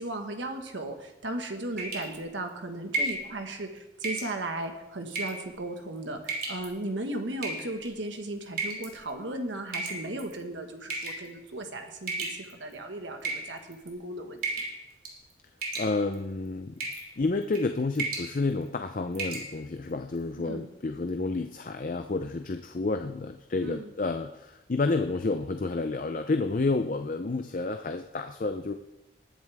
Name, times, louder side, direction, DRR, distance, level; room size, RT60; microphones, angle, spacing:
voice 1, 0.0-14.4 20.4-20.7 23.6-23.9, right 1 dB, 85° right, 5 dB, 1.6 m, -36 dB
sound 1, 1.8-2.2 2.9-3.2 4.0-4.3 5.1-5.5 6.2-6.7 7.4-7.9 8.6-8.9 9.7-10.3 10.9-11.3 12.1-12.7 13.2-13.9 14.4-14.8 15.0-15.3 15.6-16.2 16.8-17.1 17.4-17.6 17.9-18.3 18.7-18.8 19.1-19.5, right 3 dB, 50° right, 2.9 m, -33 dB
voice 2, 15.8-16.7 17.2-28.7, left 3 dB, 45° left, 7 dB, 0.5 m, -30 dB
19.5 x 10.5 x 3.5 m, 0.98 s
head